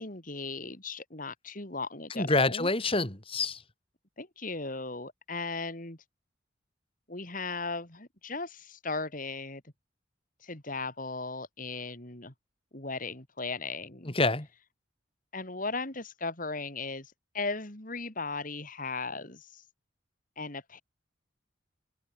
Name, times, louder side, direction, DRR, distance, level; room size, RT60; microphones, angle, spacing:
voice 1, 0.0-2.7 4.2-6.0 7.1-9.6 10.4-12.3 12.7-14.1 15.3-19.6 20.4-20.8, left 3 dB, 45° left, 3.4 m, -37 dB
voice 2, 2.1-3.6 14.1-14.5, left 2 dB, 30° left, 3.4 m, -26 dB
head